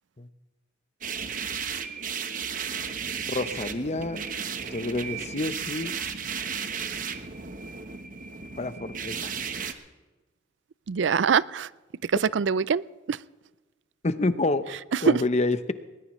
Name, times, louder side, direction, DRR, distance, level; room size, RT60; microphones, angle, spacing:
sound 1, 1.0-9.7, right 6 dB, 45° right, 1.1 m, -34 dB
voice 1, 3.3-4.2 4.7-5.9 8.6-9.3 14.0-14.8 15.0-15.7, left 2 dB, 40° left, 12 dB, 0.8 m, -28 dB
voice 2, 10.9-11.7 12.0-13.2 14.9-15.2, right 6 dB, 80° right, 20 dB, 0.4 m, -24 dB
20.0 x 20.0 x 3.2 m, 1.2 s
head